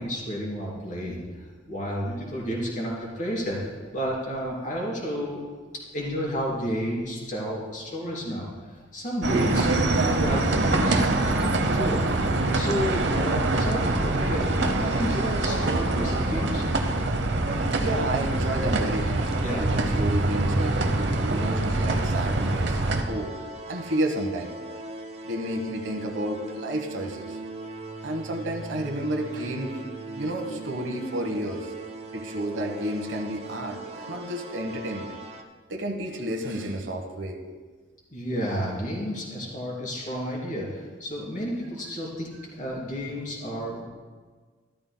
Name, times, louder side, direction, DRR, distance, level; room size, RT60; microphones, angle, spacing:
voice 1, 0.0-5.4 5.9-8.5 8.9-12.0 12.5-16.6 19.4-19.6 38.1-42.3 42.6-43.8, equal, 45° left, -3 dB, 3.2 m, -31 dB
sound 1, 9.2-23.0, right 2 dB, 70° right, 0.9 m, -24 dB
sound 2, 17.5-35.4, right 3 dB, 35° right, 0.7 m, -41 dB
voice 2, 17.8-19.2 19.6-22.8 23.1-23.3 23.7-24.5 25.2-27.4 28.0-29.8 30.2-31.7 32.1-35.2 35.7-37.4, right 1 dB, 90° right, 4 dB, 1.2 m, -31 dB
13.0 x 13.0 x 2.2 m, 1.4 s
head